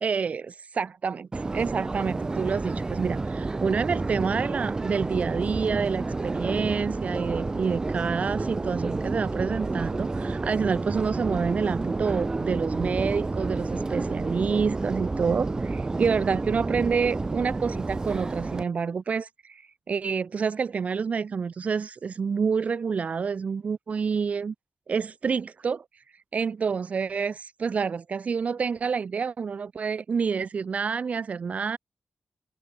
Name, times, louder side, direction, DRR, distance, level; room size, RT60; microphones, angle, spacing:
voice 1, 0.0-24.5 24.9-25.8 26.3-31.8, right 5 dB, 50° right, 0.9 m, -28 dB
Subway metro underground, 1.3-18.6, right 3 dB, 25° right, 2.7 m, -30 dB
wide cardioid pair, 170°, 3 cm